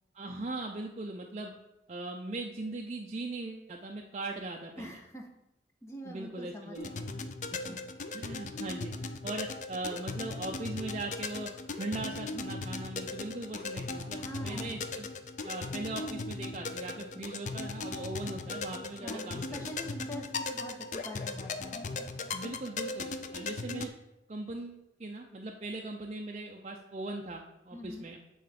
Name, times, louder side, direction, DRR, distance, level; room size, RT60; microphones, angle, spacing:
voice 1, 0.1-1.5 1.9-5.0 6.0-7.0 7.5-7.8 8.1-8.9 9.2-11.5 11.8-15.1 15.4-19.6 22.3-23.9 24.3-28.2, right 2 dB, 40° right, 1 dB, 0.5 m, -39 dB
voice 2, 4.8-5.3 5.8-6.8 7.1-7.3 7.7-7.8 14.2-14.8 19.0-21.7 27.7-28.1, equal, 15° left, 1 dB, 0.8 m, -44 dB
sound 1, 6.8-23.9, left 3 dB, 40° left, 0.4 m, -38 dB
7.8 x 3.3 x 5.1 m, 0.90 s
head